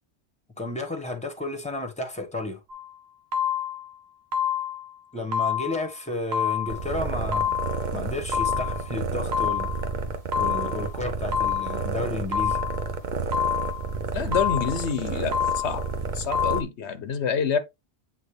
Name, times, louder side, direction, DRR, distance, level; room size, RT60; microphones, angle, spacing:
voice 1, 0.6-2.6 5.1-7.5 7.9-9.7 10.4-12.6, left 2 dB, 5° left, 1.3 m, -32 dB
sound 1, 2.7-2.9 3.3-3.9 4.3-4.9 5.3-5.9 6.3-6.9 7.3-7.9 8.3-8.9 9.3-9.9 10.3-10.9 11.3-11.9 12.3-12.9 13.3-13.9 14.3-14.9 15.3-15.9 16.3-16.6, left 8 dB, 65° right, 1.3 m, -27 dB
sound 2, 6.7-16.6, right 4 dB, 50° right, 0.9 m, -31 dB
voice 2, 14.1-15.8 16.1-17.6, left 6 dB, 80° left, 1.1 m, -27 dB
8.5 x 3.7 x 3.3 m
omnidirectional pair, 1.1 m